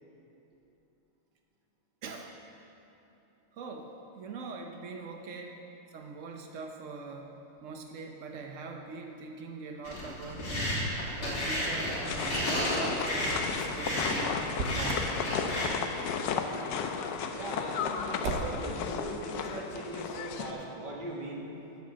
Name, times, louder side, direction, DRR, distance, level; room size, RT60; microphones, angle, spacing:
voice 1, 3.6-5.5 5.9-7.3 7.6-10.7 11.2-14.4 14.7-15.1, right 4 dB, 90° right, 3 dB, 0.6 m, -42 dB
sound 1, 9.8-15.7, left 1 dB, 85° left, 3.7 m, -32 dB
sound 2, 12.0-20.5, left 6 dB, 70° left, 1.2 m, -34 dB
Motor vehicle (road), 14.5-15.2 18.2-18.8, right 3 dB, 55° right, 1.3 m, -35 dB
voice 2, 17.3-21.5, right 1 dB, 25° right, -2 dB, 1.5 m, -39 dB
11.0 x 7.6 x 7.4 m, 2.9 s
omnidirectional pair, 2.4 m